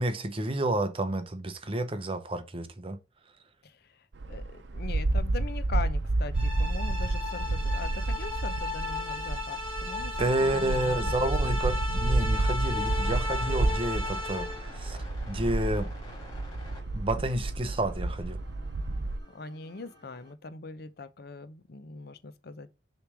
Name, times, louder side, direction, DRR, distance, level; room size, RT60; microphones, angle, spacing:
voice 1, 0.0-3.0 10.2-15.9 16.9-18.4, right 1 dB, 30° right, 0.7 m, -30 dB
voice 2, 3.6-11.0 11.5-11.6 19.3-22.7, left 3 dB, 55° left, 0.7 m, -41 dB
sound 1, 4.1-19.2, right 2 dB, 70° right, 0.7 m, -30 dB
sound 2, 6.3-14.8, left 3 dB, 5° right, 2.5 m, -35 dB
sound 3, 10.2-20.3, left 1 dB, 20° left, 2.5 m, -51 dB
6.8 x 3.2 x 6.0 m
head